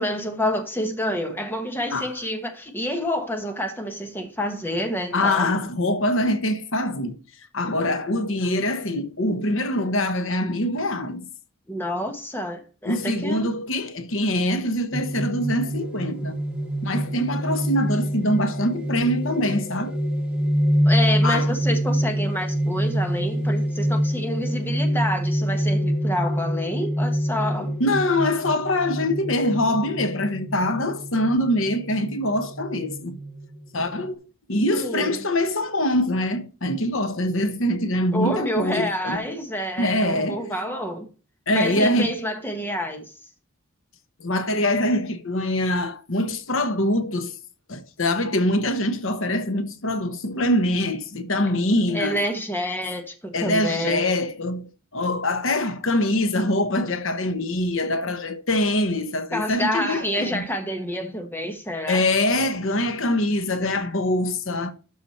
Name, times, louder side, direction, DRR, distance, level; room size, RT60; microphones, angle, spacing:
voice 1, 0.0-5.5 11.7-13.5 20.8-27.7 34.7-35.2 38.1-41.1 41.5-43.1 51.9-54.1 59.3-62.0, equal, 10° left, 1.3 m, -28 dB
voice 2, 5.1-7.2 7.5-11.3 12.9-16.4 16.8-20.0 21.2-21.5 27.8-33.2 33.7-34.2 34.5-39.2 39.8-40.5 41.5-42.1 44.2-47.4 47.7-52.2 53.3-60.4 61.9-64.7, left 1 dB, 65° left, 1.1 m, -24 dB
sound 1, 14.9-34.1, equal, 5° right, 2.3 m, -26 dB
12.5 x 4.9 x 4.2 m
head